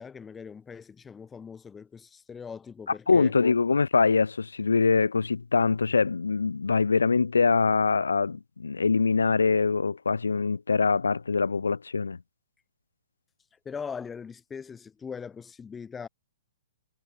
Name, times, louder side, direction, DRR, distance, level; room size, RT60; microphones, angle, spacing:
voice 1, 0.0-3.3 13.5-16.1, left 6 dB, 15° left, 2.8 m, -40 dB
voice 2, 3.1-12.2, left 4 dB, 80° left, 1.5 m, -23 dB
figure-of-eight pair, 120°, 0 cm